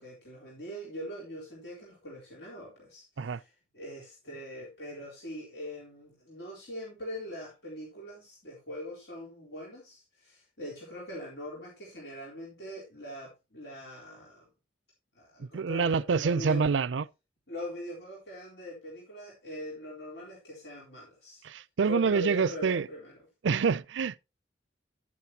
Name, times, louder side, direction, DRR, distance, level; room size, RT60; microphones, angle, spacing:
voice 1, 0.0-14.5 15.1-16.7 17.5-21.4 21.9-23.2, left 1 dB, 65° left, 3.9 m, -42 dB
voice 2, 15.4-17.0 21.4-22.9 23.4-24.2, right 5 dB, 85° right, 0.5 m, -27 dB
11.5 x 9.3 x 2.8 m
head